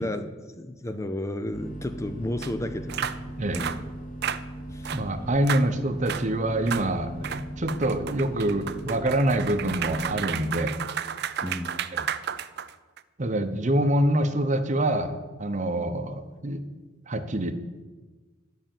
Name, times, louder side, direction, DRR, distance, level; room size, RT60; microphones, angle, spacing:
voice 1, 0.0-3.2 3.5-3.8 4.7-4.9 11.4-11.9, left 1 dB, 15° left, 9 dB, 0.5 m, -33 dB
sound 1, 1.5-10.3, right 1 dB, 45° left, 2.2 m, -39 dB
sound 2, 2.4-2.5 2.9-3.2 3.5-3.8 4.2-4.4 4.8-5.0 5.4-5.7 6.1-6.3 6.7-6.9 7.2-13.0, right 9 dB, 55° right, 0.5 m, -32 dB
voice 2, 4.9-10.8 11.9-12.1 13.2-16.6 17.1-17.5, right 1 dB, 40° right, 9 dB, 0.8 m, -26 dB
11.5 x 5.8 x 9.0 m, 1.3 s
head